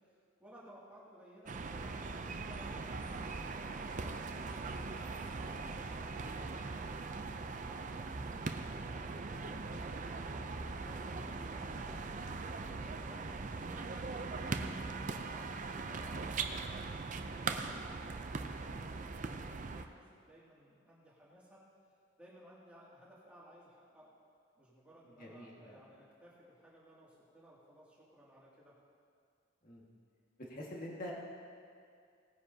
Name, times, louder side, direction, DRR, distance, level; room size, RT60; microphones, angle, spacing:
voice 1, 0.4-4.7 5.0-7.2 7.6-9.9 10.7-12.1 12.7-17.0 17.3-21.6 22.2-24.1 24.6-28.8, equal, 5° right, -8 dB, 2.5 m, -59 dB
sound 1, 1.5-19.8, right 3 dB, 40° right, 0.5 m, -40 dB
voice 2, 25.2-25.8 29.6-29.8 30.5-31.1, left 1 dB, 40° left, -4 dB, 1.9 m, -46 dB
19.0 x 9.7 x 2.8 m, 2.3 s
head